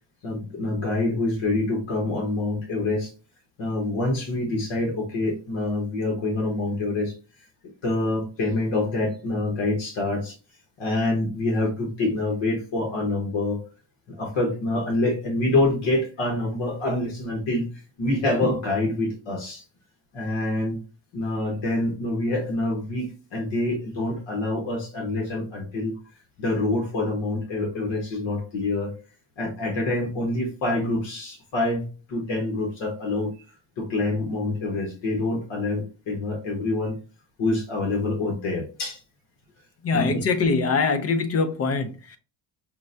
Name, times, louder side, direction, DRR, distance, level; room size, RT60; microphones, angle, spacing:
voice 1, 0.2-3.1 3.6-7.1 7.8-10.3 10.8-13.6 14.2-17.7 18.0-19.6 20.1-20.8 21.1-25.9 26.4-28.9 29.4-33.3 33.8-36.9 37.4-39.0 39.9-40.1, left 2 dB, 70° left, 1.2 m, -26 dB
voice 2, 39.8-42.2, left 4 dB, 35° left, 0.4 m, -23 dB
5.8 x 2.1 x 2.6 m
cardioid pair, 135°, 47 cm